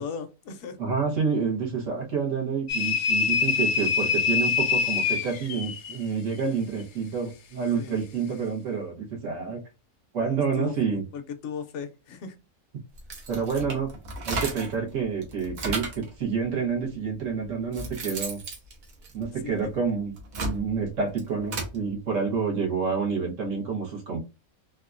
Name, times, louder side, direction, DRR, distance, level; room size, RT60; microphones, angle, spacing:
voice 1, 0.0-0.8 7.8-8.0 10.2-12.3 19.4-19.7, left 6 dB, 65° left, 0.8 m, -37 dB
voice 2, 0.8-9.6 10.1-11.0 13.3-13.9 14.3-18.4 19.1-20.1 20.4-24.2, right 5 dB, 65° right, 1.4 m, -28 dB
sound 1, 2.7-6.0, left 6 dB, 90° left, 0.4 m, -25 dB
sound 2, 13.0-14.8 15.2-16.1 16.9-17.0 17.5-19.6 20.1-21.8, right 2 dB, 85° right, 1.3 m, -34 dB
3.5 x 2.3 x 2.4 m
omnidirectional pair, 1.4 m